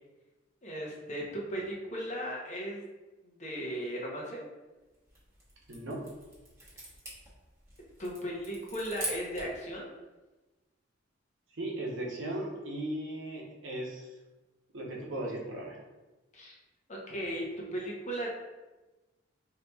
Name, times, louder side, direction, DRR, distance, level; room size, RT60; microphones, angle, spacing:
voice 1, 0.6-2.8 3.2-4.4 8.0-9.9 16.3-16.6 16.9-18.3, equal, 40° left, -2 dB, 0.7 m, -36 dB
sound 1, 4.9-9.6, right 2 dB, 15° right, 0.9 m, -43 dB
voice 2, 5.7-6.0 11.6-14.1 14.7-15.8, right 1 dB, 75° right, -2 dB, 0.8 m, -37 dB
4.1 x 2.8 x 2.2 m, 1.1 s
head